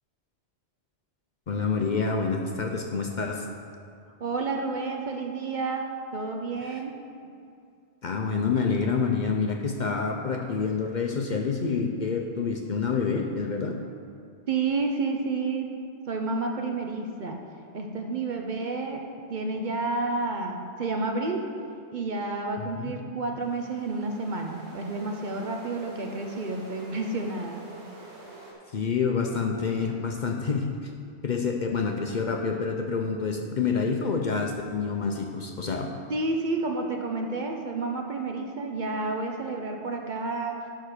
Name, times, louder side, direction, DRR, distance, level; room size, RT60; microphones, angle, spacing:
voice 1, 1.5-3.5 6.6-6.8 8.0-13.8 22.6-22.9 28.7-30.9 31.2-35.9, left 5 dB, 50° left, 2 dB, 0.6 m, -28 dB
voice 2, 4.2-7.0 14.5-15.7 16.1-17.4 17.7-21.5 21.9-27.6 36.1-40.7, right 3 dB, 50° right, 2 dB, 0.8 m, -30 dB
sound 1, 23.4-28.5, right 2 dB, 80° right, 2.0 m, -47 dB
11.5 x 3.8 x 6.5 m, 2.4 s
omnidirectional pair, 1.1 m